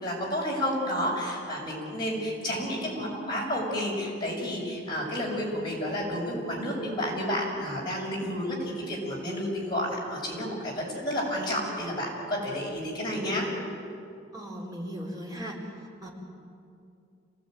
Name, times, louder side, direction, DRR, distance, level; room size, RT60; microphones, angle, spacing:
voice 1, 0.0-13.4, equal, 25° left, -4 dB, 6.5 m, -31 dB
voice 2, 14.3-15.6 16.0-16.1, equal, 20° right, -2 dB, 4.4 m, -37 dB
27.5 x 18.0 x 9.4 m, 2.5 s
head